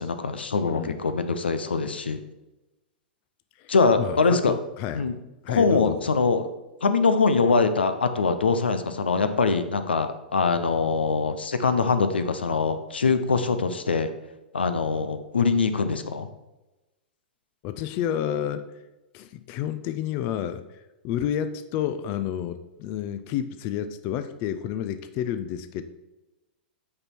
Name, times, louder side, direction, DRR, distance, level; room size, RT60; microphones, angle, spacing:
voice 1, 0.0-2.2 3.7-4.6 4.9-5.1 5.5-6.5 6.8-14.1 14.5-16.3, left 4 dB, 85° left, 10 dB, 0.7 m, -23 dB
voice 2, 0.7-1.0 3.6-3.7 4.0-5.1 5.4-6.1 17.6-18.6 19.1-25.8, left 10 dB, 40° left, 11 dB, 0.5 m, -30 dB
8.5 x 4.5 x 4.4 m, 1.0 s
hypercardioid pair, 110°, 5 cm